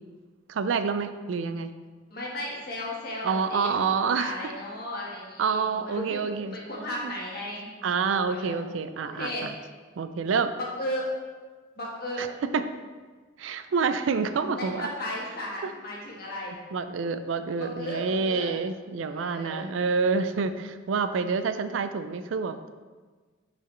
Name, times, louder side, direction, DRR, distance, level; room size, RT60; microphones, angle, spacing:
voice 1, 0.5-1.7 3.2-4.3 5.4-6.6 7.0-7.1 7.8-9.5 10.0-10.5 12.2-12.3 12.5-12.6 13.4-14.9 15.6-15.7 16.7-22.7, right 5 dB, 85° right, 10 dB, 0.4 m, -27 dB
voice 2, 2.1-3.7 4.0-6.2 6.5-7.7 8.3-8.6 9.0-9.5 10.6-11.1 11.8-12.2 14.6-16.6 17.8-18.5 19.1-19.7, left 1 dB, 55° left, -4 dB, 1.3 m, -35 dB
8.5 x 3.9 x 3.2 m, 1.4 s
head